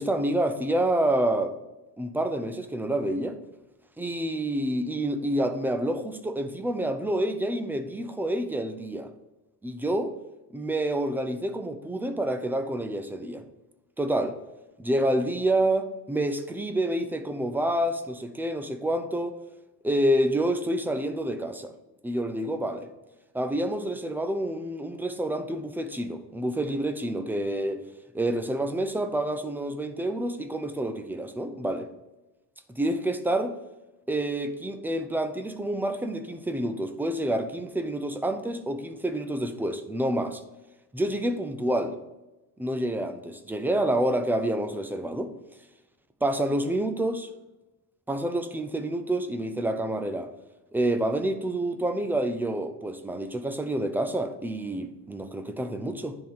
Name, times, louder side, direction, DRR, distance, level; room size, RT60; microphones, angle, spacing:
voice 1, 0.0-1.6 2.0-3.4 4.0-9.1 9.6-10.1 10.5-13.4 14.0-14.3 14.8-19.4 19.8-21.7 22.0-22.9 23.3-27.8 28.1-31.9 32.7-33.5 34.1-40.4 40.9-42.0 42.6-45.3 46.2-47.3 48.1-50.3 50.7-56.2, right 1 dB, 5° right, 8 dB, 0.4 m, -28 dB
10.0 x 3.8 x 5.2 m, 1.0 s
cardioid pair, 145°, 41 cm